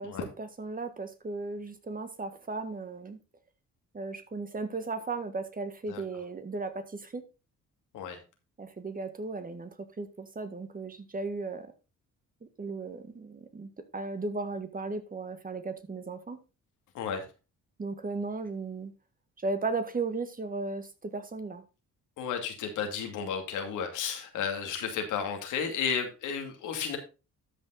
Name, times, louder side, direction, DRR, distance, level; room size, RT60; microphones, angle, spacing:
voice 1, 0.0-3.2 3.9-7.2 8.6-11.7 12.6-16.4 17.8-18.9 19.4-21.6, right 3 dB, 30° right, 1.7 m, -36 dB
voice 2, 22.2-27.0, left 7 dB, 85° left, 2.5 m, -33 dB
12.5 x 5.5 x 4.0 m
cardioid pair, 90°, 30 cm